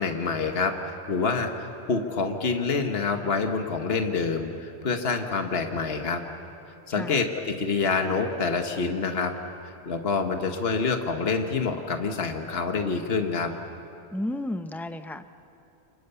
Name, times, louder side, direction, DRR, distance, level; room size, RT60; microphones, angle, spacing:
voice 1, 0.0-6.2 6.9-9.3 9.8-13.5, left 4 dB, 65° left, 5 dB, 1.6 m, -27 dB
voice 2, 6.9-7.2 14.1-15.2, left 1 dB, ahead, 9 dB, 0.6 m, -32 dB
29.0 x 24.5 x 6.9 m, 3.0 s
omnidirectional pair, 1.1 m